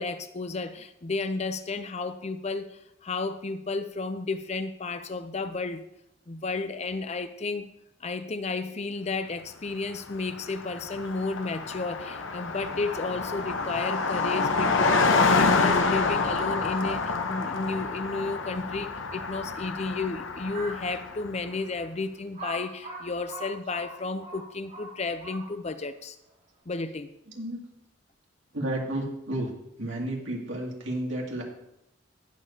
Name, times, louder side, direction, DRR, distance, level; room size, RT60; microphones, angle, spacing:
voice 1, 0.0-5.8 6.3-7.7 8.0-26.2 26.7-27.1, left 3 dB, 35° left, 10 dB, 0.5 m, -32 dB
Car passing by, 10.0-10.1 10.3-21.3, left 4 dB, 85° left, 0.9 m, -27 dB
Crow, 20.4-20.9 21.5-21.6 22.3-25.8, right 2 dB, 45° right, 3.6 m, -41 dB
voice 2, 28.5-29.5 29.8-31.4, right 1 dB, 75° right, -1 dB, 2.4 m, -31 dB
18.5 x 7.0 x 2.8 m, 0.84 s
head